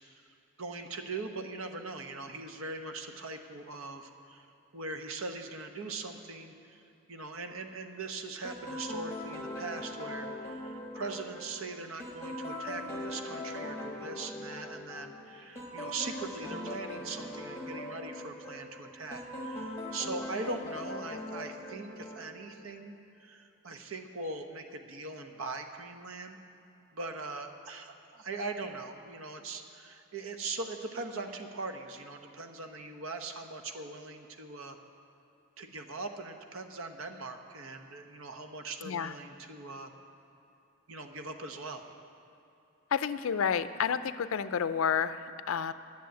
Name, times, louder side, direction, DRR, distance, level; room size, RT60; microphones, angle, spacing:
voice 1, 0.6-4.5 4.7-6.8 7.1-26.4 26.9-34.8 35.6-39.9 40.9-41.8, right 3 dB, 70° right, 6 dB, 0.9 m, -41 dB
sound 1, 8.4-22.7, left 1 dB, 10° left, 1.6 m, -41 dB
voice 2, 42.9-45.7, left 7 dB, 70° left, 13 dB, 0.4 m, -30 dB
10.5 x 7.1 x 9.2 m, 2.9 s
head